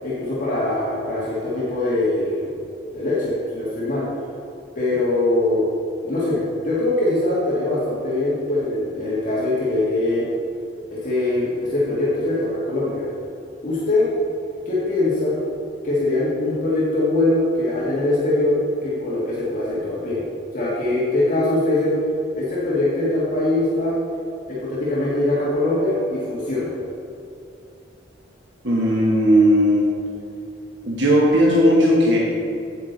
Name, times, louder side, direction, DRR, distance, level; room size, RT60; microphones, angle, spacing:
voice 1, 0.0-2.5 2.9-4.0 4.8-5.7 6.0-10.3 10.9-13.0 13.6-14.1 14.7-15.4 15.8-20.2 20.5-22.0 22.3-24.0 24.5-26.7, left 2 dB, 45° left, -8 dB, 1.7 m, -22 dB
voice 2, 28.6-29.8 30.8-32.2, equal, 70° right, -4 dB, 1.2 m, -16 dB
8.8 x 8.2 x 4.0 m, 2.6 s
head